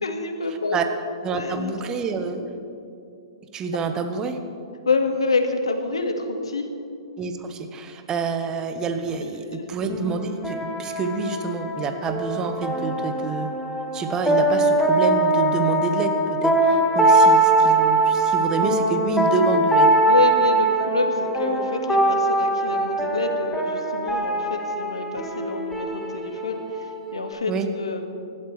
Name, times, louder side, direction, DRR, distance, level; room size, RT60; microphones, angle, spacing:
voice 1, 0.0-0.8 1.3-1.7 2.3-2.4 4.9-6.7 9.2-9.6 20.0-28.0, left 3 dB, 85° left, 5 dB, 1.9 m, -27 dB
voice 2, 1.2-2.4 3.5-4.4 7.2-13.5 13.9-20.0 27.5-27.7, right 4 dB, 25° right, 6 dB, 1.2 m, -27 dB
sound 1, 9.9-27.3, right 2 dB, 5° left, 1.6 m, -22 dB
25.0 x 12.0 x 3.3 m, 2.6 s
hypercardioid pair, 120°, 3 cm